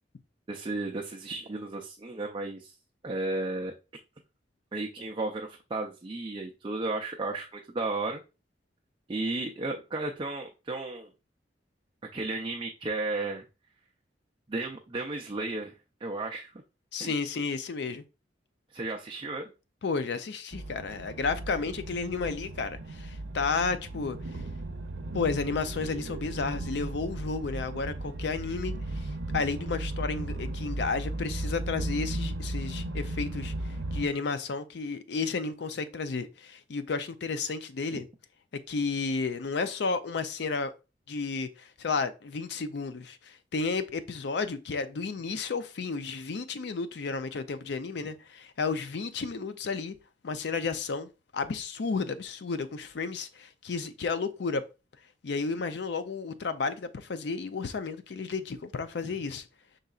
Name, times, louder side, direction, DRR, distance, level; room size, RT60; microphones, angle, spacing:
voice 1, 0.5-2.7 3.0-3.7 4.7-8.2 9.1-11.1 12.1-13.4 14.5-15.7 16.0-16.5 17.0-17.1 18.7-19.5 37.9-38.0, right 2 dB, 25° right, 0.4 m, -34 dB
voice 2, 16.9-18.0 19.8-24.4 25.1-38.0 38.7-40.7 41.1-49.9 50.2-54.6 55.2-59.5, left 4 dB, 65° left, 0.5 m, -32 dB
sound 1, 20.5-34.1, right 2 dB, 85° right, 0.6 m, -36 dB
5.4 x 3.8 x 2.4 m
head